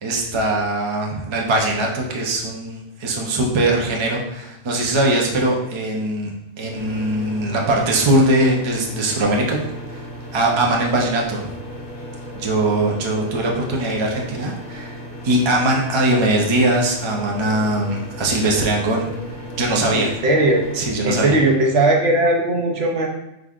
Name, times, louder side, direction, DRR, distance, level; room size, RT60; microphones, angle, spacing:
voice 1, 0.0-6.3 6.6-9.6 9.9-10.0 10.3-11.5 12.4-15.0 15.2-19.0 19.6-20.1 20.7-21.4, right 1 dB, 35° right, -1 dB, 0.5 m, -21 dB
sound 1, 6.7-20.8, equal, 65° left, 1.8 m, -35 dB
voice 2, 19.9-20.7 21.0-23.1, right 2 dB, 65° right, 1 dB, 0.8 m, -18 dB
4.8 x 3.9 x 2.4 m, 0.88 s
omnidirectional pair, 1.3 m